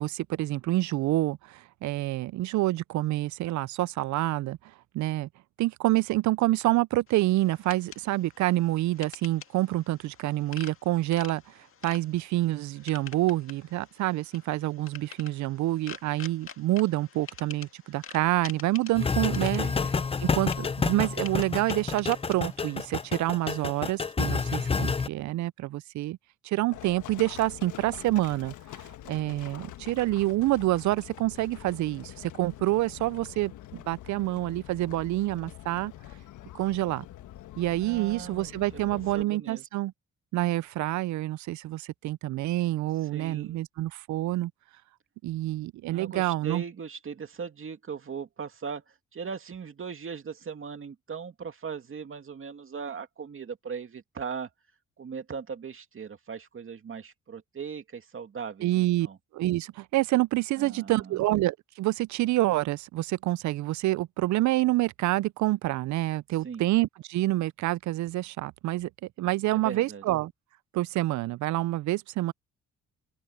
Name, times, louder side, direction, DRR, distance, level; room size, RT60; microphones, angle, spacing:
voice 1, 0.0-4.6 4.9-5.3 5.6-11.4 11.8-19.6 20.2-26.2 26.4-28.5 29.1-35.9 36.5-37.0 37.6-39.9 40.3-44.5 45.2-46.6 58.6-59.1 59.3-68.9 69.2-70.3 70.7-72.3, right 17 dB, 70° right, 0.4 m, -27 dB
sound 1, 7.1-23.8, left 7 dB, 45° left, 2.0 m, -48 dB
sound 2, 18.9-25.1, left 5 dB, 20° left, 0.5 m, -29 dB
Livestock farm animals working animals, 26.7-39.2, left 13 dB, 80° left, 1.4 m, -45 dB
voice 2, 37.8-38.5 38.9-39.7 43.1-43.6 45.9-54.5 55.0-59.2 60.6-61.3 66.4-66.6 69.5-70.0, right 6 dB, 45° right, 2.4 m, -39 dB
open air
cardioid pair, 90°, 30 cm